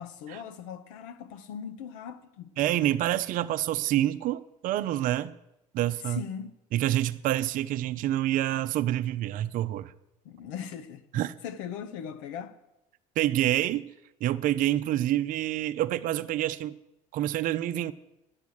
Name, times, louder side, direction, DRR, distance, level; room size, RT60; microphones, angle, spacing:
voice 1, 0.0-2.5 6.0-6.5 10.2-12.6, left 8 dB, 85° left, 0.7 m, -39 dB
voice 2, 2.6-5.4 5.7-6.2 6.7-9.9 11.1-11.3 13.2-13.9 14.2-16.8 17.1-17.9, right 13 dB, 60° right, 0.5 m, -27 dB
10.5 x 7.0 x 6.4 m
supercardioid pair, 75°, 16 cm